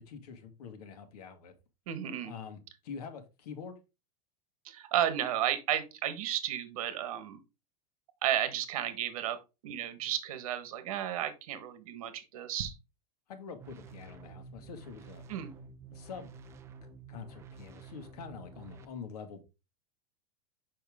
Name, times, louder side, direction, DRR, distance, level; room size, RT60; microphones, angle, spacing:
voice 1, 0.0-1.5 2.2-3.8 13.3-15.2 15.9-16.3 17.1-19.4, left 6 dB, 85° left, 1.8 m, -45 dB
voice 2, 1.9-2.3 4.6-7.4 8.2-9.4 9.6-12.7 15.3-15.5, right 10 dB, 65° right, 1.4 m, -33 dB
sound 1, 13.6-18.8, right 4 dB, 15° right, 0.4 m, -50 dB
6.5 x 5.7 x 3.6 m
supercardioid pair, 170°, 19 cm